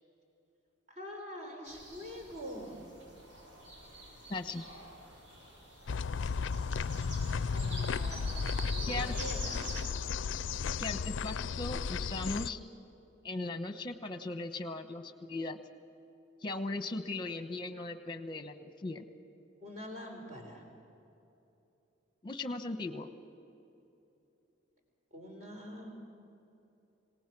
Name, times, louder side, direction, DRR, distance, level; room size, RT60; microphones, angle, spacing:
voice 1, 0.9-2.8 7.5-9.6 19.6-20.6 25.1-26.0, equal, 40° right, 1 dB, 4.3 m, -45 dB
sound 1, 1.7-9.9, right 1 dB, 70° right, 7.1 m, -47 dB
voice 2, 4.3-4.6 8.9-9.2 10.8-12.6 13.2-15.6 16.4-19.1 22.2-23.1, left 2 dB, 25° left, 9 dB, 1.1 m, -38 dB
sound 2, 5.9-12.5, left 5 dB, 80° left, 0.4 m, -34 dB
26.5 x 19.0 x 6.1 m, 2.8 s
head